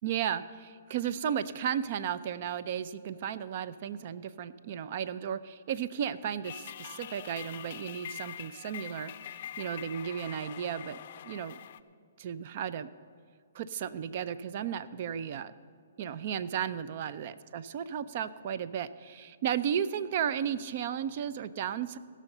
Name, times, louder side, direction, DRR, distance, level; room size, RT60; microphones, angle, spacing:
voice 1, 0.0-9.1 9.6-11.0 11.2-11.6 12.2-12.9 13.5-15.5 16.0-22.0, right 9 dB, 45° right, 15 dB, 0.5 m, -34 dB
sound 1, 6.4-11.8, left 10 dB, 50° left, 0.5 m, -44 dB
17.0 x 6.3 x 6.6 m, 2.3 s
hypercardioid pair, 145°, 0 cm